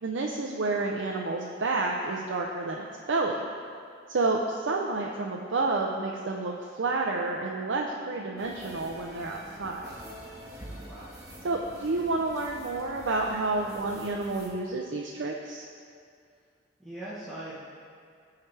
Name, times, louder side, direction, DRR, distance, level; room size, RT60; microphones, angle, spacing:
voice 1, 0.0-3.5 4.1-9.9 11.4-15.6, right 3 dB, 70° right, -1 dB, 0.5 m, -30 dB
sound 1, 8.4-14.5, equal, 20° right, 1.6 m, -46 dB
voice 2, 10.6-11.1 16.8-17.6, right 1 dB, ahead, -12 dB, 1.1 m, -41 dB
14.0 x 4.8 x 3.3 m, 2.2 s
head